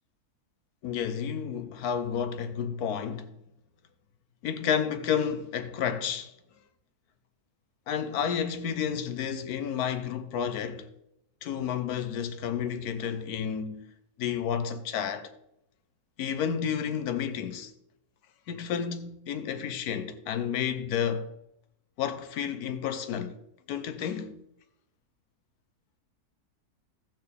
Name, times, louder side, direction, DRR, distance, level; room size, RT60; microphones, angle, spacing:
voice 1, 0.8-3.3 4.4-6.3 7.9-10.9 11.4-13.8 14.2-15.3 16.2-17.7 18.5-21.3 22.0-23.4 23.7-24.3, left 8 dB, 80° left, 1.3 m, -31 dB
13.5 x 6.8 x 3.4 m
omnidirectional pair, 1.6 m